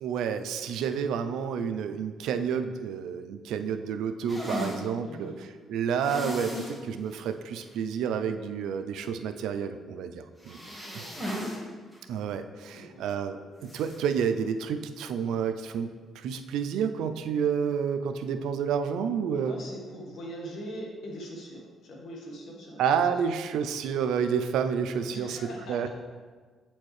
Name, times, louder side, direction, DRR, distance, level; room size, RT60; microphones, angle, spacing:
voice 1, 0.0-5.3 5.7-10.6 10.9-11.0 12.1-15.9 16.2-19.5 22.8-25.4 25.7-25.9, right 7 dB, 85° right, 9 dB, 0.4 m, -29 dB
sound 1, 4.3-4.8 6.0-6.8 7.1-7.2 7.6-7.7 10.4-11.6 11.9-12.0 13.6-14.0, left 1 dB, 10° left, 1.6 m, -35 dB
voice 2, 5.0-5.4 10.6-11.3 12.7-13.1 19.4-22.8 25.1-25.9, equal, 70° left, -1 dB, 1.4 m, -42 dB
7.8 x 4.3 x 3.2 m, 1.5 s
cardioid pair, 90°, 0 cm